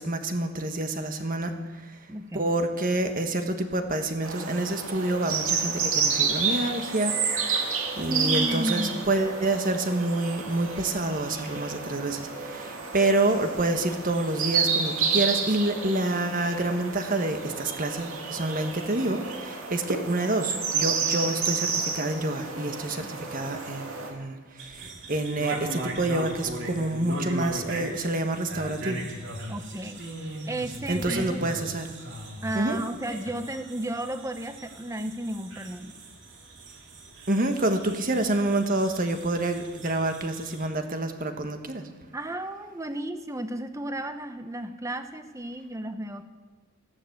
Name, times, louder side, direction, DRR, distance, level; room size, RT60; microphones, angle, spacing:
voice 1, 0.0-1.5 2.3-7.2 8.0-12.3 12.5-12.7 12.9-23.0 23.3-24.4 25.1-29.0 30.9-31.9 32.5-32.8 37.3-41.8, right 2 dB, 40° right, 6 dB, 1.4 m, -27 dB
voice 2, 2.1-2.5 8.1-9.1 23.0-23.1 29.5-30.0 30.5-31.4 32.4-36.0 42.1-46.2, right 1 dB, 15° right, 9 dB, 0.9 m, -33 dB
sound 1, 4.2-24.1, right 5 dB, 75° right, 2.4 m, -30 dB
sound 2, 24.6-40.7, right 1 dB, 55° right, 2.4 m, -39 dB
15.0 x 12.0 x 7.9 m, 1.3 s
head